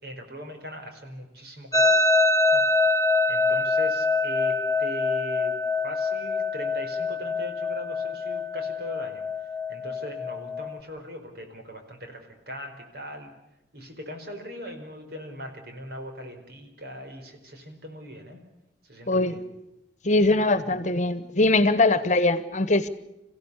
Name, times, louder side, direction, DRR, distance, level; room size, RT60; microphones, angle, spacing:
voice 1, 0.0-2.0 2.5-5.6 5.8-13.3 13.7-18.4 18.8-19.4 20.6-20.8, equal, 60° right, 4 dB, 4.8 m, -40 dB
sound 1, 1.7-10.8, left 2 dB, 20° left, 1.1 m, -25 dB
voice 2, 20.0-22.9, left 2 dB, 45° left, 13 dB, 1.3 m, -21 dB
27.0 x 16.5 x 8.4 m, 0.92 s
head